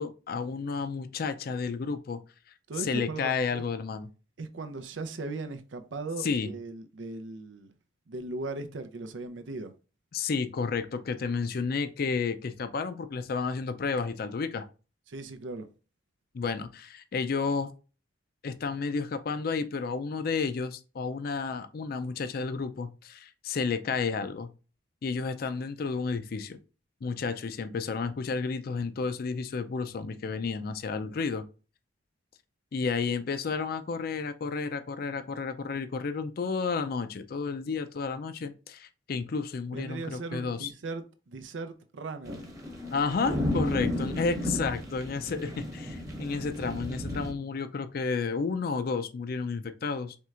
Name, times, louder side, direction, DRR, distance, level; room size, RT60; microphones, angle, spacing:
voice 1, 0.0-2.2 2.8-4.1 6.2-6.5 10.1-14.7 16.3-17.7 18.4-24.5 25.0-26.6 27.0-31.4 32.7-40.7 42.9-50.2, left 4 dB, 55° left, 0.4 m, -31 dB
voice 2, 2.7-3.6 4.4-7.7 8.1-9.7 15.1-15.7 39.7-42.5 44.4-44.6, right 3 dB, 85° right, 0.6 m, -38 dB
sound 1, 42.2-47.3, left 1 dB, 20° right, 0.9 m, -33 dB
4.4 x 3.2 x 2.4 m
head